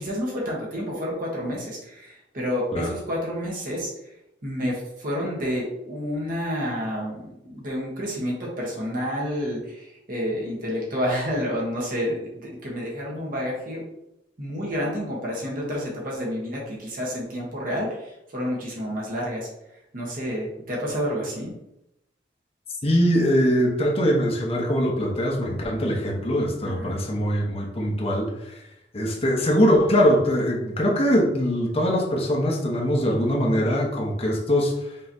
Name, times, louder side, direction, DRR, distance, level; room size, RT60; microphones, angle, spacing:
voice 1, 0.0-4.1 4.4-13.8 14.4-19.5 19.9-21.5 26.6-27.0, equal, 50° right, -4 dB, 1.3 m, -29 dB
voice 2, 22.8-28.6 28.9-34.7, equal, 35° left, -2 dB, 0.9 m, -22 dB
5.5 x 3.1 x 2.7 m, 0.84 s
head